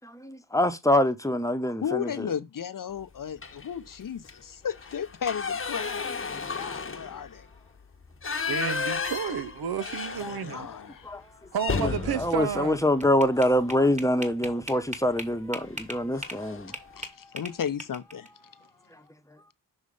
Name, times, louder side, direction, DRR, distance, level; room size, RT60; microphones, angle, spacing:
voice 1, 0.0-2.3 10.2-10.7 11.0-11.2 11.7-16.8, left 1 dB, 10° left, 1.0 m, -25 dB
voice 2, 1.8-6.1 6.5-7.5 10.0-11.1 17.0-18.3, left 8 dB, 55° left, 0.7 m, -34 dB
sound 1, 3.4-3.8 4.2-4.3 4.7-10.7 11.0-11.1 11.5-13.7 15.0-15.3 15.7-15.8 16.1-16.8, left 5 dB, 30° left, 1.0 m, -33 dB
voice 3, 8.5-10.7 11.5-12.8, right 8 dB, 65° right, 0.7 m, -31 dB
sound 2, 12.5-16.4 16.7-18.3, right 1 dB, 15° right, 1.6 m, -38 dB
6.4 x 3.2 x 5.3 m
cardioid pair, 50°, 40 cm